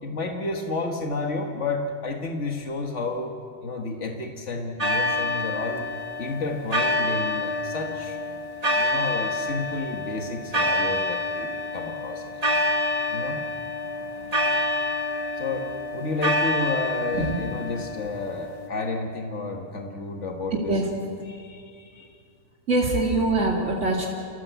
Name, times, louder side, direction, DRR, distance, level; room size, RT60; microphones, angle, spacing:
voice 1, 0.0-3.4 3.6-5.9 6.2-8.2 8.8-12.5 13.1-13.4 15.4-20.8 21.3-22.1, left 3 dB, 85° left, 3 dB, 1.9 m, -31 dB
sound 1, 4.8-18.7, left 1 dB, 35° right, 1.8 m, -27 dB
voice 2, 20.5-20.9 22.7-24.1, right 2 dB, 85° right, -1 dB, 2.7 m, -23 dB
28.0 x 18.0 x 8.2 m, 2.4 s
omnidirectional pair, 1.2 m